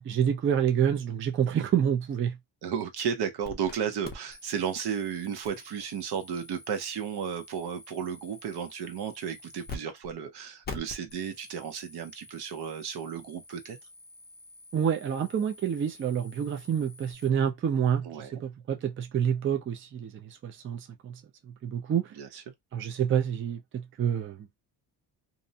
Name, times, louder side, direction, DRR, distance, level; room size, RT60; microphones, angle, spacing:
voice 1, 0.0-2.3 14.7-21.1 21.6-22.1 22.7-24.4, right 8 dB, 30° right, 0.4 m, -28 dB
voice 2, 2.6-13.8 18.0-18.4 22.2-22.4, right 7 dB, 70° right, 0.8 m, -34 dB
sound 1, 3.4-3.8 4.0-9.8 10.0-10.1 10.6-17.3, left 3 dB, 25° left, 0.5 m, -47 dB
2.6 x 2.0 x 2.6 m
cardioid pair, 135°, 40 cm